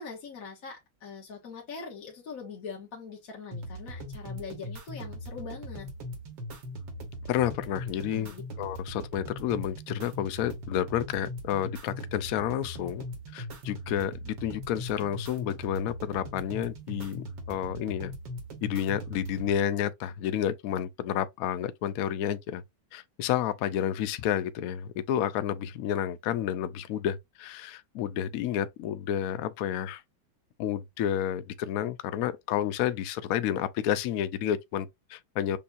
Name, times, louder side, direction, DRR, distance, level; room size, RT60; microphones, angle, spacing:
voice 1, 0.0-5.9 8.1-8.4, left 5 dB, 50° left, 1.4 m, -42 dB
sound 1, 3.5-19.5, equal, 70° right, 1.9 m, -40 dB
voice 2, 7.3-13.0 13.3-18.1 18.6-22.6 22.9-30.0 30.6-35.6, left 10 dB, 75° left, 0.8 m, -30 dB
6.9 x 2.6 x 2.6 m
omnidirectional pair, 2.1 m